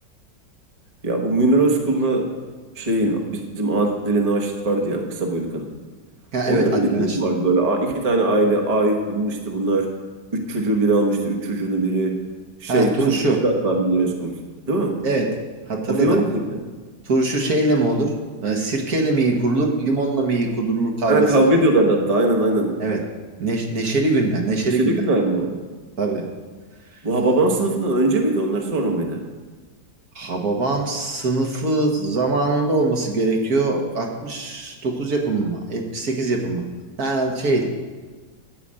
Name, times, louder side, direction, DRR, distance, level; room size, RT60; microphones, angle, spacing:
voice 1, 1.0-2.3 2.8-5.7 6.4-9.9 10.3-12.2 12.6-14.4 14.7-15.0 15.9-16.6 21.1-22.7 24.6-25.6 27.0-29.2, right 2 dB, 25° right, 2 dB, 1.1 m, -21 dB
voice 2, 6.3-7.2 12.7-13.4 15.0-15.3 15.7-16.2 17.0-18.1 18.4-21.5 22.8-23.0 23.4-24.9 26.0-26.3 30.1-36.6 37.0-37.7, right 2 dB, 55° right, 1 dB, 1.7 m, -22 dB
12.5 x 5.0 x 8.8 m, 1.4 s
omnidirectional pair, 2.0 m